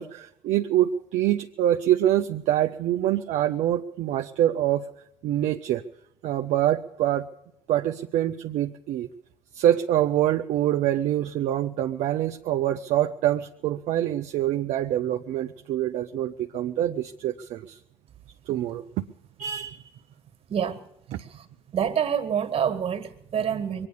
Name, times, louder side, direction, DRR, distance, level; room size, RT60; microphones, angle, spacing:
voice 1, 0.0-4.9 5.2-5.8 6.2-7.3 7.7-9.1 9.5-17.8 18.5-18.8 19.4-19.8, right 12 dB, 65° right, 6 dB, 0.7 m, -25 dB
voice 2, 20.5-20.9 21.2-21.5 21.7-23.9, right 8 dB, 45° right, 8 dB, 1.9 m, -27 dB
22.0 x 9.7 x 6.8 m, 0.86 s
hypercardioid pair, 70°, 13 cm